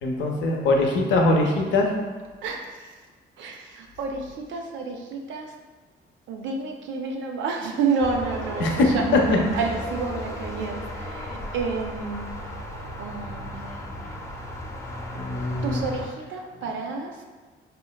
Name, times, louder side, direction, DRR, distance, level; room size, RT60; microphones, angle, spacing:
voice 1, 0.0-1.9 8.6-8.9 9.1-9.2 15.1-15.8, left 2 dB, 75° left, 1 dB, 0.5 m, -22 dB
voice 2, 2.4-2.9 3.4-5.5 6.3-12.3 13.0-14.2 15.6-17.2, right 4 dB, 70° right, 2 dB, 0.5 m, -30 dB
sound 1, 8.0-16.1, left 1 dB, 15° left, 0.4 m, -35 dB
3.7 x 2.1 x 2.2 m, 1.4 s
cardioid pair, 90°, 20 cm